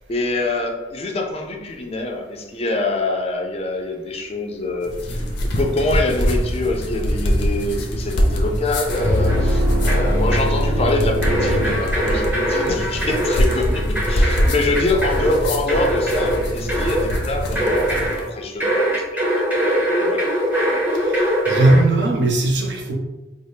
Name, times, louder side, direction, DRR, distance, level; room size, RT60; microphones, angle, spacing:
voice 1, 0.1-18.9 20.0-20.3, left 2 dB, 35° left, 2 dB, 0.4 m, -25 dB
sound 1, 4.8-18.3, equal, 75° left, 0.6 m, -24 dB
sound 2, 8.9-9.6 9.9-10.6 11.2-18.3 18.6-21.9, equal, 10° right, 0.7 m, -22 dB
sound 3, 9.0-12.5, equal, 85° right, 1.2 m, -21 dB
voice 2, 21.0-22.9, right 2 dB, 70° right, 0 dB, 0.7 m, -18 dB
4.1 x 2.0 x 3.3 m, 1.1 s
head